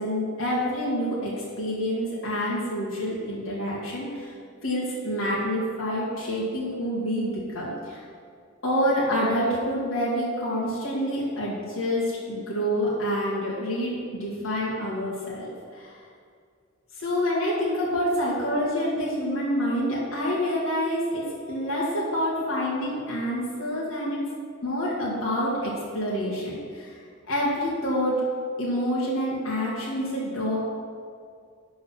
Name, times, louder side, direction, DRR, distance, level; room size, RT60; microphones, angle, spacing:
voice 1, 0.0-4.3 4.6-8.0 8.6-16.0 16.9-24.2 24.6-26.9 27.3-28.2 28.6-30.6, equal, 85° left, -6 dB, 1.7 m, -27 dB
11.5 x 3.8 x 5.9 m, 2.2 s
head